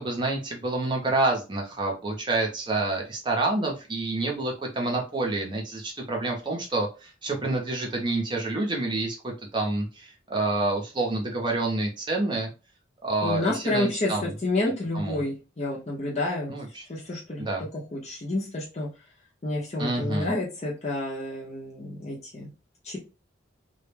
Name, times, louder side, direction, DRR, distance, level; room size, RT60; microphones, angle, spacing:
voice 1, 0.0-12.5 13.0-14.3 14.9-15.2 16.5-16.8 17.4-17.7 19.8-20.3, right 2 dB, 25° right, 0 dB, 0.6 m, -28 dB
voice 2, 13.2-16.5 16.9-17.5 17.9-18.9 19.4-22.5 22.8-23.0, left 2 dB, 35° left, -4 dB, 0.6 m, -29 dB
2.2 x 2.1 x 3.2 m, 0.30 s
head